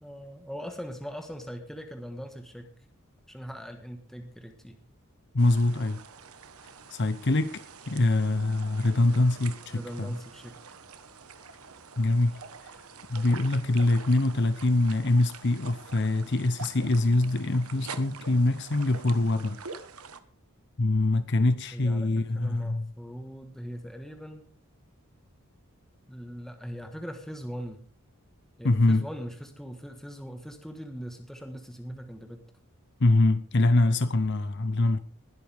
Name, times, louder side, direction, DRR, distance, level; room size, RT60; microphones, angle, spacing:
voice 1, 0.0-2.7 3.3-4.8 9.7-10.5 21.7-24.5 26.1-27.8 28.6-32.4, equal, ahead, 1.5 m, -40 dB
voice 2, 5.3-6.0 6.9-10.1 12.0-12.3 13.1-19.6 20.8-22.9 28.6-29.0 33.0-35.0, left 2 dB, 50° left, 0.8 m, -24 dB
sound 1, 5.4-20.2, right 5 dB, 80° right, 1.3 m, -46 dB
20.0 x 12.0 x 3.5 m
head